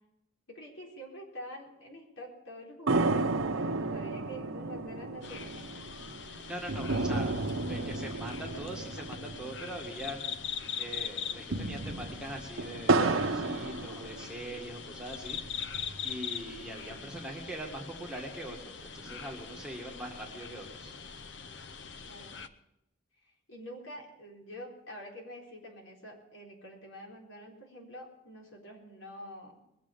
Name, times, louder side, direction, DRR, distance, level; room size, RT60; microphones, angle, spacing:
voice 1, 0.5-5.7 16.8-17.1 22.0-22.4 23.2-29.6, equal, 75° left, -1 dB, 4.1 m, -47 dB
sound 1, 2.9-10.5 10.7-10.8 11.3-14.6 15.1-16.1, right 3 dB, 90° right, 1.0 m, -32 dB
sound 2, 5.2-22.5, left 7 dB, 60° left, 0.7 m, -42 dB
voice 2, 6.2-7.4 7.7-21.0, right 1 dB, 5° right, -1 dB, 1.9 m, -42 dB
21.5 x 7.5 x 7.0 m, 0.84 s
head